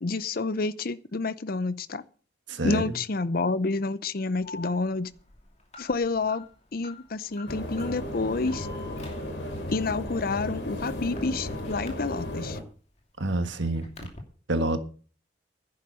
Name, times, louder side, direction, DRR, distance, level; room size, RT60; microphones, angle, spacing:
voice 1, 0.0-2.0 2.6-5.1 5.8-6.4 6.7-8.7 9.7-12.6, left 3 dB, 50° left, 0.6 m, -29 dB
voice 2, 2.5-2.9 13.2-13.9 14.5-14.8, right 2 dB, 80° right, 1.6 m, -27 dB
Alarm, 4.4-12.6 13.0-14.2, left 2 dB, 35° left, 2.7 m, -46 dB
sound 1, 7.5-12.6, left 1 dB, 75° left, 3.3 m, -34 dB
11.0 x 9.2 x 6.4 m
head